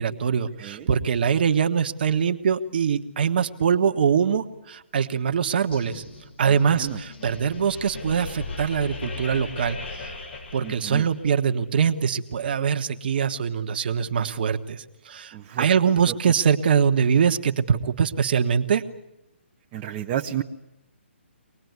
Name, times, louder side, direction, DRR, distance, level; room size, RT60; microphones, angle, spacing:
voice 1, 0.0-6.0 6.4-10.2 10.5-18.8, right 7 dB, 50° right, 7 dB, 1.4 m, -23 dB
sound 1, 5.7-11.3, left 3 dB, 60° left, 6.3 m, -38 dB
voice 2, 10.6-11.1 15.3-15.7 16.1-16.2 19.7-20.4, right 11 dB, 25° right, 1 dB, 0.9 m, -31 dB
24.5 x 19.5 x 9.5 m, 0.92 s
hypercardioid pair, 150°, 7 cm